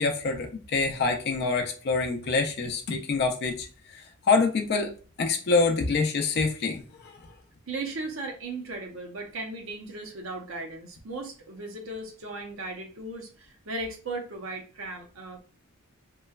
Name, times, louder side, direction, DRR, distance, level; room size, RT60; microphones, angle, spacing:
voice 1, 0.0-3.7 4.3-7.1, left 4 dB, 50° left, 3 dB, 0.4 m, -26 dB
voice 2, 7.7-15.4, right 2 dB, 65° right, 2 dB, 0.7 m, -37 dB
3.0 x 2.2 x 2.3 m, 0.38 s
head